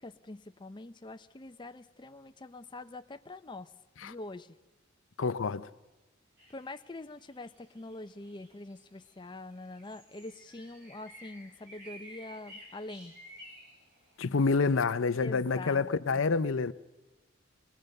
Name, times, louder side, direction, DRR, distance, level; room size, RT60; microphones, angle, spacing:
voice 1, 0.0-3.7 4.0-4.5 6.5-13.1 15.2-16.2, left 2 dB, 25° left, 0.6 m, -45 dB
voice 2, 5.2-5.7 14.2-16.7, left 4 dB, 75° left, 0.6 m, -28 dB
sound 1, 6.4-14.8, equal, 55° right, 7.6 m, -54 dB
23.5 x 20.0 x 6.5 m
head